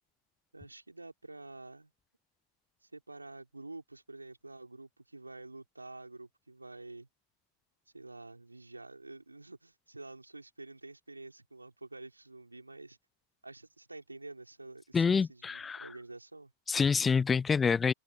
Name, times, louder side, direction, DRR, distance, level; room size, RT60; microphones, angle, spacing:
voice 1, 0.5-1.9 2.8-7.1 7.9-13.0 13.4-16.5, right 2 dB, 80° right, 4.4 m, -48 dB
voice 2, 14.9-15.9 16.7-17.9, left 5 dB, 15° left, 0.6 m, -27 dB
figure-of-eight pair, 90°, 0 cm